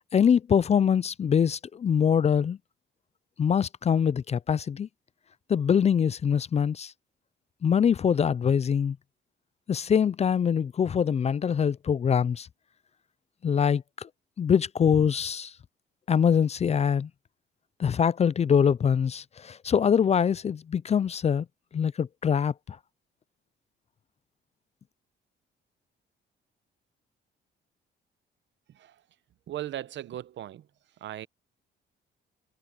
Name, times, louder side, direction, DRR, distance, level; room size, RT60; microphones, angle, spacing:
voice 1, 0.1-2.6 3.4-4.9 5.5-6.9 7.6-9.0 9.7-12.5 13.4-14.1 14.4-15.5 16.1-17.1 17.8-21.5 21.7-22.8, left 7 dB, 35° left, 0.4 m, -24 dB
voice 2, 29.5-30.6 31.0-31.3, right 12 dB, 70° right, 0.9 m, -37 dB
cardioid pair, 90°, 20 cm